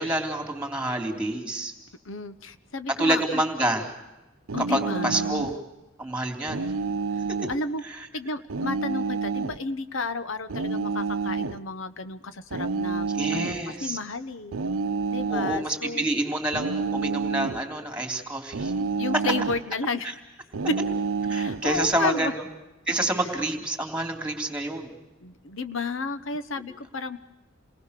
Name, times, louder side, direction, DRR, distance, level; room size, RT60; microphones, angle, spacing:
voice 1, 0.0-1.7 3.0-3.9 4.6-5.5 6.0-6.7 13.1-14.0 15.3-18.7 21.3-22.4 22.9-24.9, right 1 dB, 5° right, 4 dB, 3.2 m, -28 dB
voice 2, 2.0-3.4 4.5-5.3 7.1-7.2 7.5-14.6 15.1-16.1 18.8-20.2 20.7-20.8 21.3-22.3 25.2-27.2, left 3 dB, 75° left, 11 dB, 1.0 m, -32 dB
sound 1, 4.5-5.6 6.5-7.6 8.5-9.6 10.5-11.6 12.5-13.6 14.5-15.6 16.5-17.7 18.5-19.7 20.5-21.6, right 4 dB, 90° right, 0.7 m, -28 dB
28.5 x 20.0 x 6.7 m, 1.0 s
head